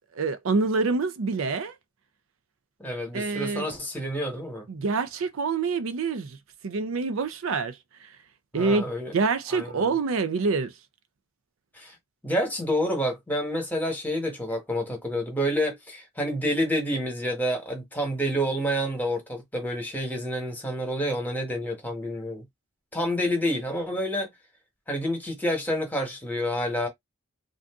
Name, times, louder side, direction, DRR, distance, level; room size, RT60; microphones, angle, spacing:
voice 1, 0.1-1.8 3.1-3.7 4.7-6.4 6.6-8.2 8.5-10.7, right 4 dB, 70° right, 0.5 m, -26 dB
voice 2, 2.8-4.7 8.5-9.1 9.5-9.9 11.7-11.9 12.2-22.5 22.9-24.3 24.9-26.9, equal, 10° left, 1.1 m, -28 dB
2.5 x 2.5 x 3.5 m
head